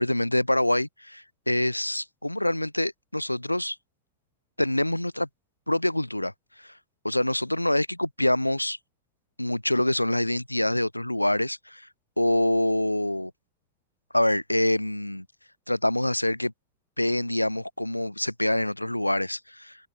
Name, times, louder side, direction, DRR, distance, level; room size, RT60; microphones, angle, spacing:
voice 1, 0.0-3.8 4.6-5.3 5.7-6.3 7.0-8.8 9.4-11.8 12.2-13.3 14.1-15.2 15.7-16.5 17.0-19.8, left 1 dB, 85° left, 4.6 m, -25 dB
open air
figure-of-eight pair, 90°, 0 cm